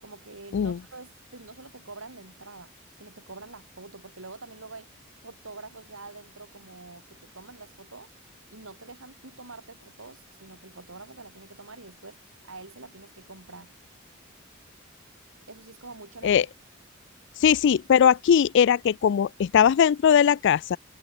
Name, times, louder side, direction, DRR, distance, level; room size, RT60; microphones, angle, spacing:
voice 1, 0.0-2.7 3.0-4.9 5.2-8.1 8.5-12.2 12.4-13.7 15.5-16.5, right 3 dB, 85° right, 4.0 m, -45 dB
voice 2, 17.4-20.8, left 8 dB, 60° left, 0.3 m, -20 dB
head